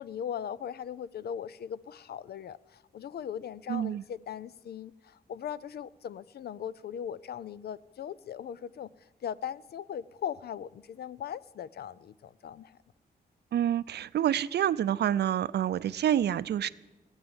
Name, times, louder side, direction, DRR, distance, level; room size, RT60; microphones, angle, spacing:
voice 1, 0.0-8.9 9.2-12.8, left 9 dB, 70° left, 19 dB, 0.5 m, -39 dB
voice 2, 3.7-4.0 13.5-16.7, right 10 dB, 80° right, 16 dB, 0.5 m, -27 dB
18.0 x 9.1 x 8.8 m, 1.1 s
wide cardioid pair, 110°, 17 cm